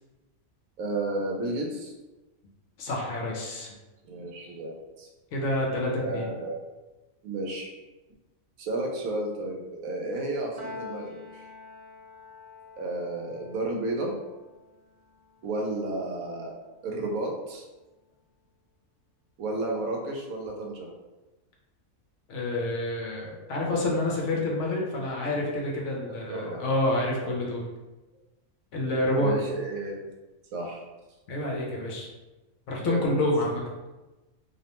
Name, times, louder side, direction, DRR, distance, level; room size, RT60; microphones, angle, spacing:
voice 1, 0.8-1.9 4.0-5.1 6.0-6.6 7.2-7.7 8.6-11.5 12.8-14.2 15.4-16.5 16.8-17.7 19.4-20.9 26.1-26.6 29.2-30.1 30.5-30.8 32.9-33.1, right 2 dB, 80° right, 0 dB, 1.0 m, -32 dB
voice 2, 2.8-3.7 5.3-6.3 22.3-27.6 28.7-29.3 31.3-32.1 32.7-33.6, left 1 dB, 65° left, -2 dB, 0.8 m, -28 dB
Piano, 10.6-17.1, left 3 dB, 30° right, 0.4 m, -47 dB
2.7 x 2.1 x 2.9 m, 1.1 s
omnidirectional pair, 1.4 m